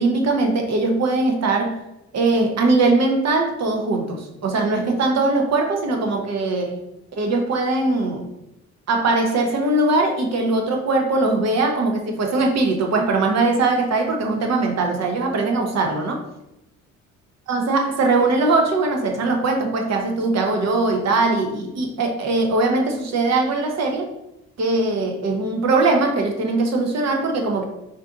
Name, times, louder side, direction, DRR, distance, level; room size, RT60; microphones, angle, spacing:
voice 1, 0.0-1.8 2.1-6.8 7.1-8.3 8.9-16.2 17.5-24.1 24.6-27.7, right 3 dB, 60° right, 3 dB, 0.9 m, -21 dB
4.0 x 2.6 x 3.7 m, 0.87 s
cardioid pair, 90°, 30 cm